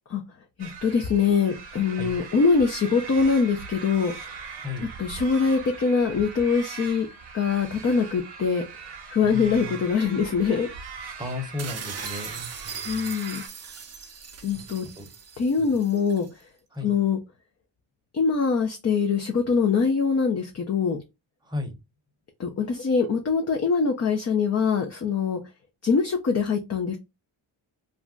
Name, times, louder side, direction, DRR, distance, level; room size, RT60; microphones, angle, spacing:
voice 1, 0.6-4.1 5.0-7.1 7.3-8.6 9.1-10.7 12.9-13.4 14.4-14.8 15.4-16.2 16.8-17.2 18.1-21.0 22.4-25.4 25.8-27.0, left 5 dB, 35° left, 2 dB, 0.5 m, -23 dB
sound 1, 0.6-13.5, right 5 dB, 55° right, 0.9 m, -41 dB
voice 2, 4.6-4.9 9.2-9.8 11.2-13.1 14.5-15.1 15.6-15.7 16.7-16.9 21.4-21.7, left 2 dB, 10° right, 4 dB, 0.8 m, -35 dB
sound 2, 11.6-16.3, right 6 dB, 35° right, 0.5 m, -39 dB
2.5 x 2.1 x 3.6 m, 0.24 s
cardioid pair, 65°, 48 cm